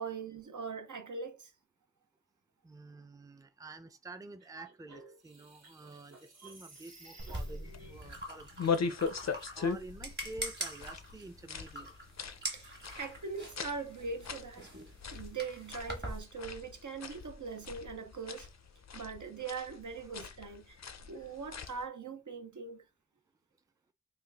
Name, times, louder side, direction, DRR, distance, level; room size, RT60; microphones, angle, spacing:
voice 1, 0.0-1.5 9.3-9.4 12.5-14.7 15.1-18.5 18.9-22.8, right 5 dB, 80° right, 0.7 m, -41 dB
voice 2, 2.6-9.0 9.3-11.9 19.9-20.1, right 3 dB, 10° right, 0.4 m, -49 dB
sound 1, 4.4-8.2, right 1 dB, 60° right, 1.0 m, -54 dB
sound 2, 7.2-16.2, right 1 dB, 35° right, 1.2 m, -44 dB
sound 3, 7.6-21.8, left 5 dB, 60° left, 0.5 m, -40 dB
3.6 x 2.3 x 3.3 m
wide cardioid pair, 45°, 30 cm